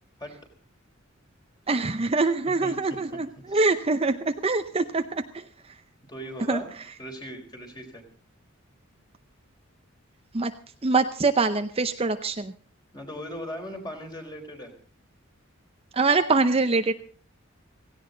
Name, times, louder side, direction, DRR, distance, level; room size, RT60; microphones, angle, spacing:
voice 1, 1.7-5.8 6.5-6.9 10.3-10.5 10.8-12.5 15.9-16.9, right 3 dB, 30° right, 8 dB, 0.7 m, -24 dB
voice 2, 2.6-3.2 3.5-3.6 6.1-6.7 7.0-8.0 12.9-14.7, equal, 20° left, 3 dB, 4.2 m, -38 dB
17.0 x 16.5 x 3.9 m, 0.44 s
head